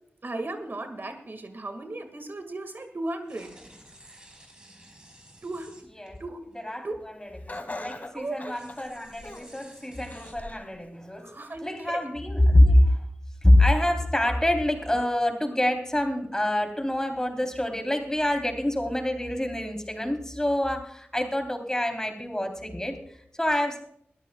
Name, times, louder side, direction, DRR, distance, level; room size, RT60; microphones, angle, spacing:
voice 1, 0.2-3.6 5.4-5.8 6.2-6.5 6.8-6.9 8.1-8.6 11.2-12.1, right 2 dB, 55° right, 7 dB, 1.9 m, -36 dB
sound 1, 3.2-6.2 6.5-6.7 7.6-8.1 8.5-10.3, right 1 dB, 20° right, 4.6 m, -52 dB
voice 2, 7.2-11.3 11.6-13.0 13.4-23.8, left 1 dB, 15° left, 4 dB, 3.4 m, -25 dB
Laughter, 7.5-9.6 10.1-10.7 11.2-11.3 12.3-12.4, left 2 dB, 40° left, 2.1 m, -40 dB
22.5 x 14.0 x 2.3 m, 0.69 s
cardioid pair, 55°, 4 cm